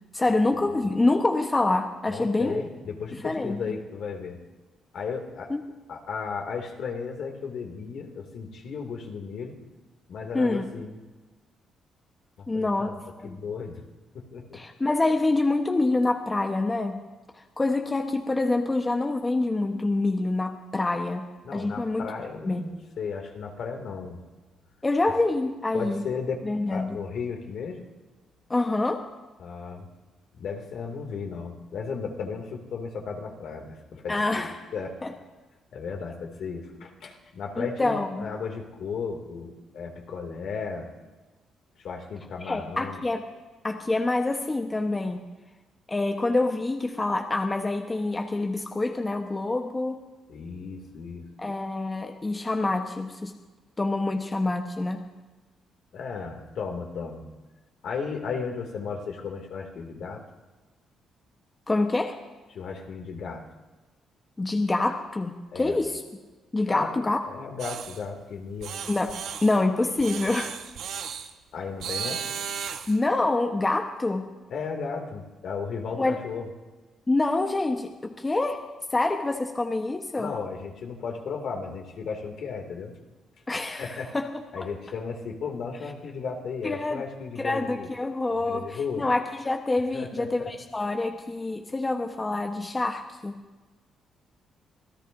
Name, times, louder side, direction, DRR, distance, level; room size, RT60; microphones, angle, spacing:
voice 1, 0.1-2.6 3.1-3.8 5.5-5.6 10.3-10.6 12.5-12.9 13.2-13.4 14.5-17.0 17.3-22.1 22.4-22.7 24.8-26.0 26.4-27.0 28.5-29.0 34.1-34.5 35.0-35.1 37.6-38.3 42.4-43.3 43.6-45.3 45.9-50.0 51.4-53.3 53.8-55.0 61.7-62.2 64.4-66.0 66.5-67.2 68.9-69.2 69.4-70.5 72.9-74.3 76.0-76.2 77.1-78.6 78.9-80.3 83.5-84.4 86.6-87.0 87.4-93.4, left 2 dB, 20° left, 4 dB, 1.1 m, -26 dB
voice 2, 2.1-4.4 4.9-5.5 5.9-9.5 10.1-11.0 12.4-13.0 13.2-13.8 14.1-14.6 21.4-24.2 25.7-27.8 29.4-29.9 30.3-35.0 35.7-40.9 41.8-43.0 50.3-51.3 55.9-57.3 57.8-60.2 62.5-63.4 65.5-65.8 66.6-66.9 67.3-68.7 71.5-72.2 74.5-76.5 80.2-82.9 83.8-84.1 84.5-87.9 88.4-89.0 89.9-90.5, left 5 dB, 70° left, 2 dB, 2.5 m, -35 dB
sound 1, 67.6-68.0 68.6-69.6 70.0-71.3 71.8-73.0, right 7 dB, 75° right, 1.1 m, -35 dB
26.5 x 16.5 x 2.7 m, 1.2 s
cardioid pair, 90°, 0 cm